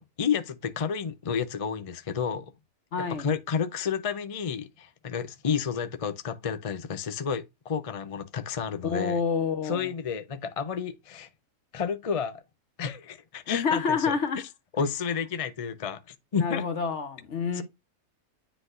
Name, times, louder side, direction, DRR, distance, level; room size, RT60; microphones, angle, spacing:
voice 1, 0.0-2.5 3.1-9.2 9.6-11.3 11.7-12.4 12.8-14.1 14.7-16.6 17.5-17.6, left 6 dB, 40° left, 0.5 m, -31 dB
voice 2, 2.9-3.3 8.8-9.9 13.5-14.4 16.4-17.6, left 5 dB, 55° left, 1.4 m, -28 dB
10.0 x 4.0 x 2.5 m
omnidirectional pair, 1.5 m